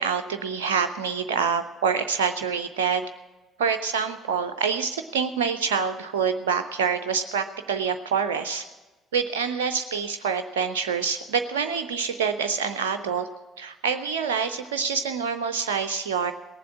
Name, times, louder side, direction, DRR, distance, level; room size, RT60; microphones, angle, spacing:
voice 1, 0.0-3.0 3.6-8.7 9.1-13.3 13.6-16.3, right 6 dB, 75° right, 9 dB, 0.4 m, -26 dB
18.0 x 7.5 x 8.4 m, 1.2 s
figure-of-eight pair, 50°, 0 cm